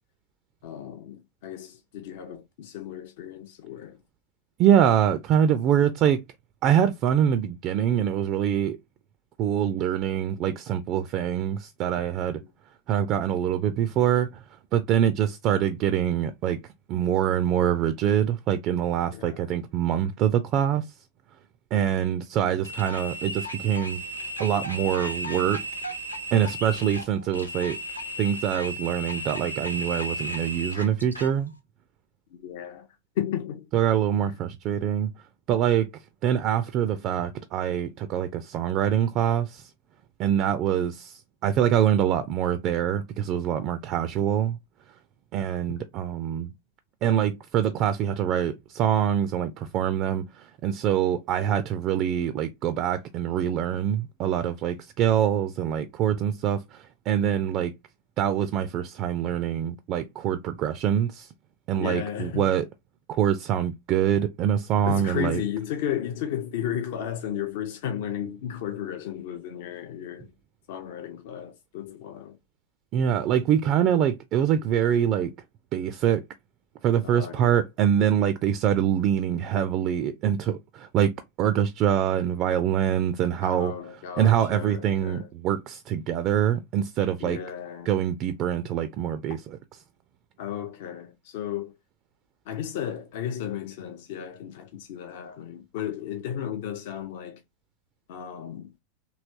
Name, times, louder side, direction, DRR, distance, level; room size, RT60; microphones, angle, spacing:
voice 1, 0.6-4.0 12.3-12.4 19.1-19.5 32.3-32.9 33.2-33.7 34.2-34.4 45.7-45.9 61.8-62.5 64.8-70.3 70.7-72.4 77.0-77.6 83.4-85.3 87.2-87.9 90.4-91.7 92.5-97.4 98.1-98.7, left 9 dB, 50° left, 0.4 m, -34 dB
voice 2, 4.6-6.2 6.6-8.8 9.4-12.4 12.9-14.4 14.7-16.6 16.9-20.9 21.7-24.0 24.4-25.6 26.3-27.8 28.2-31.5 33.7-35.1 35.5-39.7 40.2-44.6 45.3-46.5 47.0-57.7 58.2-61.3 61.7-62.7 63.1-65.4 72.9-75.3 75.7-76.2 76.8-81.1 81.4-83.7 84.2-87.4 87.9-89.4, right 9 dB, 35° right, 0.3 m, -24 dB
sound 1, 22.6-31.3, equal, 90° left, 0.7 m, -35 dB
3.2 x 2.8 x 2.6 m
figure-of-eight pair, 90°, 0 cm